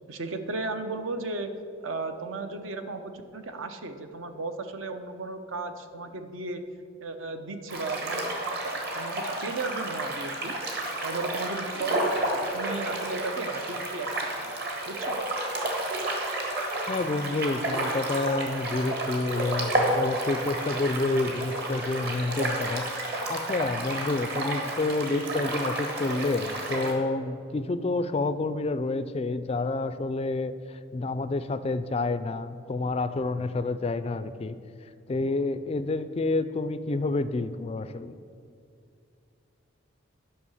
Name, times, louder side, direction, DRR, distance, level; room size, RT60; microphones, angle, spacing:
voice 1, 0.1-1.5 1.8-6.6 7.0-10.6 11.0-14.1 14.4-14.5 14.9-15.2, right 3 dB, 70° right, 8 dB, 0.8 m, -35 dB
sound 1, 7.7-26.9, right 1 dB, 50° right, 1.7 m, -31 dB
voice 2, 16.9-34.6 35.1-38.2, left 2 dB, 30° left, 12 dB, 0.3 m, -29 dB
11.0 x 5.6 x 7.1 m, 2.5 s
head